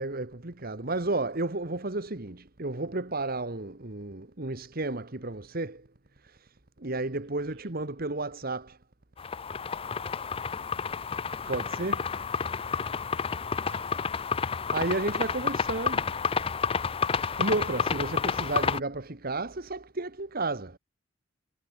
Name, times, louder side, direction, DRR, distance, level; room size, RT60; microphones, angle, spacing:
voice 1, 0.0-5.9 6.2-8.8 11.5-12.0 14.7-16.0 17.4-20.8, right 2 dB, 50° right, 1.8 m, -32 dB
voice 2, 7.2-7.7 11.4-14.3 15.2-16.9, right 3 dB, 70° right, 5.5 m, -55 dB
sound 1, 9.2-18.8, left 6 dB, 30° left, 0.5 m, -30 dB
head